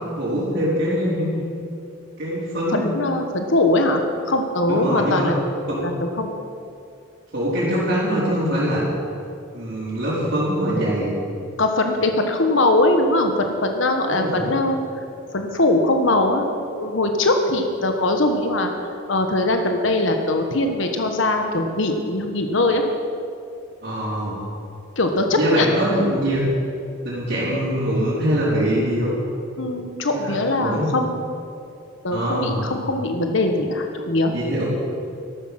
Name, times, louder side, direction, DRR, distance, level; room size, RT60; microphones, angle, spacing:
voice 1, 0.2-1.3 2.2-2.9 4.7-5.3 5.7-5.8 7.3-8.8 9.5-11.1 14.1-14.5 23.8-24.4 25.3-26.5 27.0-29.2 30.1-30.9 32.1-32.6 34.3-34.7, equal, 50° right, -10 dB, 4.2 m, -23 dB
voice 2, 2.7-5.4 5.8-5.9 6.2-6.3 11.6-14.8 15.3-18.7 19.1-22.8 25.0-25.7 29.6-31.1 32.0-34.3, left 2 dB, 65° left, 4 dB, 1.2 m, -21 dB
13.5 x 12.5 x 5.9 m, 2.5 s
head